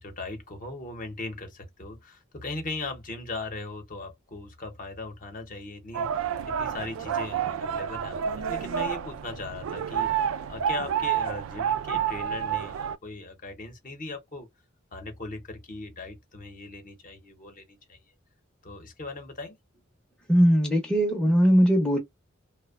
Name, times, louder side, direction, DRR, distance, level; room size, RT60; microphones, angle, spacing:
voice 1, 0.0-14.5 14.9-18.0 18.6-19.6, left 2 dB, 45° left, 0.7 m, -39 dB
sound 1, 5.9-13.0, right 8 dB, 80° right, 0.3 m, -29 dB
voice 2, 20.3-22.0, equal, 5° left, 0.5 m, -20 dB
2.6 x 2.0 x 2.3 m
head